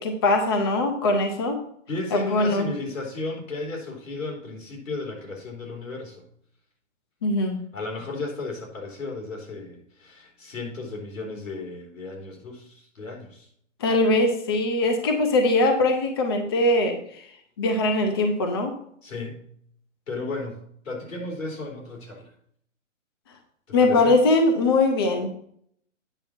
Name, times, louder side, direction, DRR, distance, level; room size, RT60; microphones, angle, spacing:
voice 1, 0.0-1.6 2.1-2.7 7.2-7.6 13.8-17.3 17.6-18.7 23.7-25.3, left 2 dB, 20° left, 5 dB, 0.5 m, -21 dB
voice 2, 1.9-6.2 7.7-13.5 19.0-19.4 20.1-22.3 23.7-24.2, left 3 dB, 85° left, 0 dB, 3.8 m, -34 dB
8.9 x 6.3 x 4.3 m, 0.65 s
hypercardioid pair, 155°, 38 cm